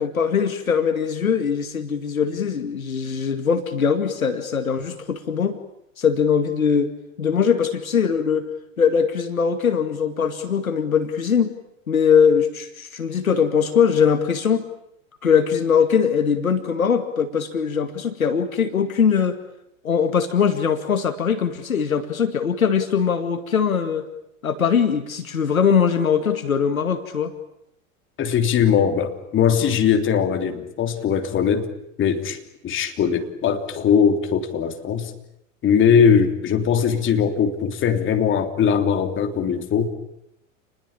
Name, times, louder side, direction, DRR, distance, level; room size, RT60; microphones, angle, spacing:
voice 1, 0.0-5.6 6.0-6.9 7.2-8.5 8.8-11.6 11.9-14.6 15.2-19.4 19.8-24.1 24.4-27.3, left 7 dB, 80° left, 9 dB, 2.2 m, -21 dB
voice 2, 28.2-31.7 32.0-35.1 35.6-39.9, left 7 dB, 30° left, 6 dB, 3.3 m, -20 dB
29.5 x 20.5 x 8.9 m, 0.80 s
figure-of-eight pair, 95°, 41 cm